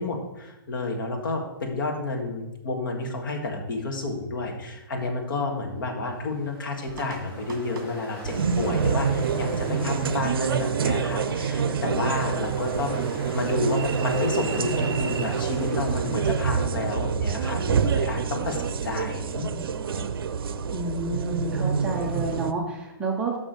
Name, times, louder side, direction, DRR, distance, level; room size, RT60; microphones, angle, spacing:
voice 1, 0.0-13.0 13.3-19.7, left 2 dB, 60° left, 2 dB, 1.7 m, -30 dB
Ocean, 6.0-17.1, equal, 30° left, 2.6 m, -41 dB
sound 1, 6.9-10.5, right 5 dB, 50° right, 1.2 m, -45 dB
sound 2, 8.2-22.5, right 6 dB, 70° right, 0.5 m, -27 dB
voice 2, 20.7-23.4, right 3 dB, 5° right, -1 dB, 0.5 m, -30 dB
6.1 x 6.1 x 5.2 m, 0.97 s
hypercardioid pair, 170°, 12 cm